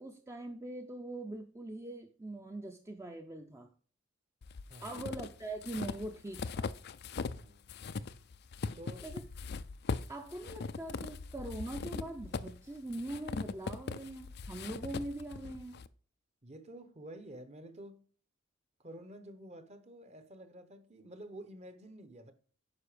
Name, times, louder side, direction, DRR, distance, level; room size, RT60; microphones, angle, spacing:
voice 1, 0.0-3.7 4.8-6.7 9.0-9.2 10.1-15.8, right 2 dB, 15° right, 0.6 m, -42 dB
sound 1, 4.4-7.4 7.7-15.9, left 4 dB, 55° left, 0.4 m, -40 dB
voice 2, 4.7-5.0 7.2-7.8 8.7-9.1 16.4-18.0 18.8-22.3, right 1 dB, 35° right, 1.0 m, -50 dB
9.7 x 5.4 x 5.0 m
head